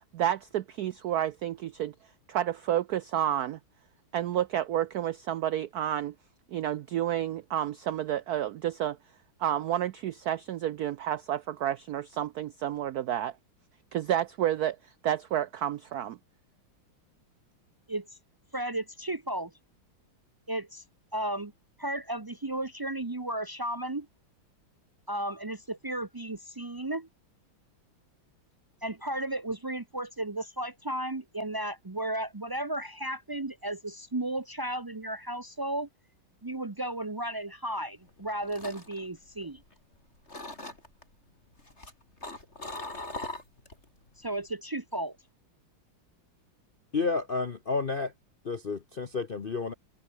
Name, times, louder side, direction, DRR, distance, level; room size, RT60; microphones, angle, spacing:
voice 1, 0.1-1.9 2.3-3.6 4.1-6.1 6.5-9.0 9.4-13.4 13.9-16.2, right 11 dB, 75° right, 0.8 m, -30 dB
voice 2, 18.5-19.5 20.5-20.8 21.1-21.5 21.8-24.1 25.1-27.1 28.8-35.9 36.4-39.6 44.2-45.2, right 1 dB, 35° right, 0.3 m, -34 dB
sound 1, 38.1-39.9 40.3-41.0 41.6-43.8 44.2-44.5, left 2 dB, 30° left, 5.6 m, -41 dB
voice 3, 46.9-48.1 48.4-49.7, left 4 dB, 50° left, 0.6 m, -30 dB
omnidirectional pair, 2.3 m